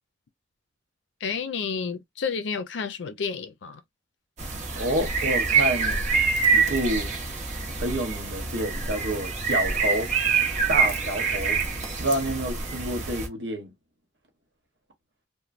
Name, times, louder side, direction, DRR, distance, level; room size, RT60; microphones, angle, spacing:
voice 1, 1.2-3.8, left 5 dB, 70° left, 0.5 m, -30 dB
sound 1, 4.4-13.3, right 5 dB, 40° right, 0.8 m, -26 dB
voice 2, 4.7-6.0 6.5-7.2 7.8-10.1 10.7-11.6 12.0-13.7, right 1 dB, 70° right, 1.1 m, -28 dB
3.1 x 2.1 x 2.5 m
head